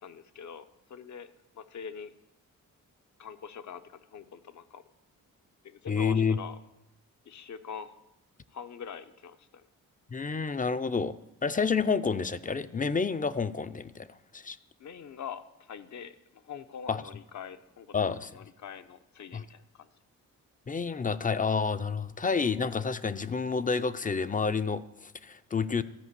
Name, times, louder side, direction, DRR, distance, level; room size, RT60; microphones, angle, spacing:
voice 1, 0.0-2.1 3.2-4.8 5.6-6.6 7.2-8.0 8.5-9.6 14.8-19.9, left 7 dB, 55° left, 11 dB, 0.8 m, -44 dB
voice 2, 5.9-6.4 10.1-11.2 11.4-14.6 16.9-17.0 17.9-18.4 19.3-19.4 20.7-25.8, left 5 dB, 25° left, 13 dB, 0.5 m, -29 dB
13.5 x 5.1 x 8.2 m, 0.91 s
cardioid pair, 65°, 34 cm